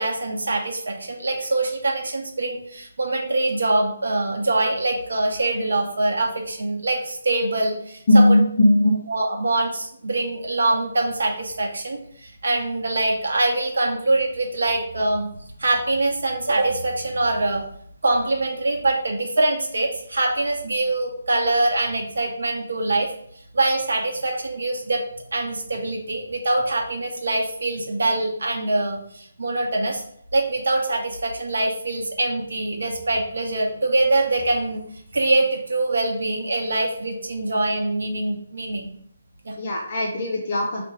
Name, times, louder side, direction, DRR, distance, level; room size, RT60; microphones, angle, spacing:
voice 1, 0.0-8.4 8.8-15.3 15.6-17.6 18.0-23.1 23.5-25.0 25.3-30.0 30.3-34.8 35.1-38.9 39.4-39.6, right 2 dB, 65° right, 1 dB, 0.7 m, -24 dB
voice 2, 8.1-9.0 9.3-9.4 39.6-40.8, left 1 dB, 45° left, -1 dB, 0.7 m, -18 dB
3.4 x 3.1 x 4.8 m, 0.66 s
figure-of-eight pair, 140°, 0 cm